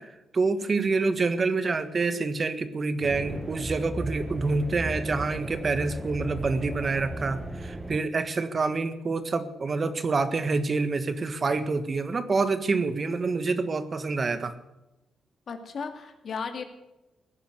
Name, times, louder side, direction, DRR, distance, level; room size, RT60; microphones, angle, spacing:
voice 1, 0.0-14.5, right 3 dB, 45° right, 11 dB, 1.5 m, -27 dB
sound 1, 3.0-8.0, right 1 dB, 20° right, 1.1 m, -36 dB
voice 2, 15.5-16.7, left 5 dB, 60° left, 6 dB, 2.4 m, -36 dB
17.0 x 10.0 x 7.9 m, 0.95 s
cardioid pair, 75°, 0 cm